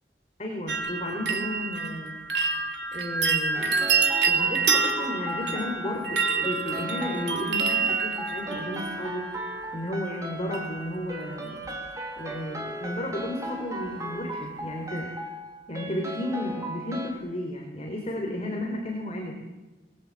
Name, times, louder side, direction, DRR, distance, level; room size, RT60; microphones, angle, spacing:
voice 1, 0.4-2.2 2.9-3.7 4.2-9.3 9.7-11.6 12.2-15.1 15.7-19.3, left 1 dB, 35° left, 1 dB, 4.2 m, -33 dB
sound 1, 0.7-9.6 10.5-11.1 11.3-11.9 12.2-12.3, right 5 dB, 90° right, 2.8 m, -28 dB
sound 2, 3.5-17.1, equal, 20° right, 3.5 m, -37 dB
26.5 x 19.5 x 8.7 m, 1.2 s
head